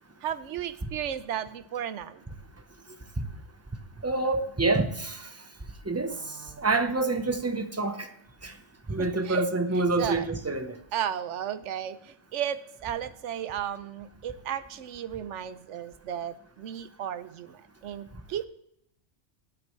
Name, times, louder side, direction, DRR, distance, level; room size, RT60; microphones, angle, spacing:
voice 1, 0.2-2.2 6.1-6.6 9.0-9.5 10.0-10.3 10.9-18.5, right 9 dB, 65° right, 14 dB, 1.0 m, -34 dB
voice 2, 4.0-5.3 5.9-6.1 6.6-8.1 8.4-8.5 8.9-10.8, right 3 dB, 15° right, 8 dB, 0.8 m, -27 dB
19.0 x 8.8 x 3.2 m, 0.74 s
omnidirectional pair, 1.4 m